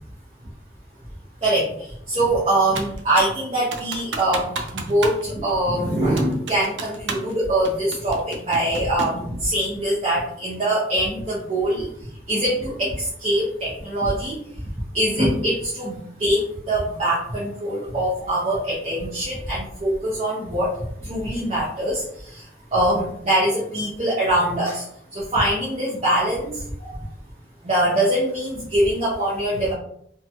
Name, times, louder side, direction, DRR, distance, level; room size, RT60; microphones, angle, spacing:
voice 1, 2.1-4.5 4.7-11.9 12.3-12.9 13.2-14.3 14.9-20.7 21.0-22.0 22.3-22.4 22.7-24.8 25.1-26.9 27.6-29.7, right 1 dB, 35° right, -7 dB, 0.8 m, -23 dB
Computer keyboard, 2.8-3.4 3.7-5.2 5.5-5.6 6.2-7.3 7.7-9.2, right 3 dB, 80° right, 0.5 m, -31 dB
2.8 x 2.3 x 2.8 m, 0.70 s
head